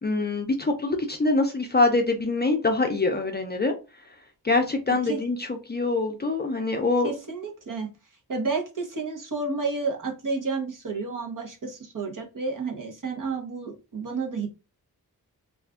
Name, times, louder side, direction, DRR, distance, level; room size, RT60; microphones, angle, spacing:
voice 1, 0.0-3.7 4.4-7.1, left 3 dB, 25° left, 4 dB, 0.5 m, -24 dB
voice 2, 7.0-7.9 8.3-14.5, right 4 dB, 55° right, 1 dB, 1.0 m, -31 dB
2.5 x 2.3 x 3.5 m, 0.30 s
wide cardioid pair, 115°, 38 cm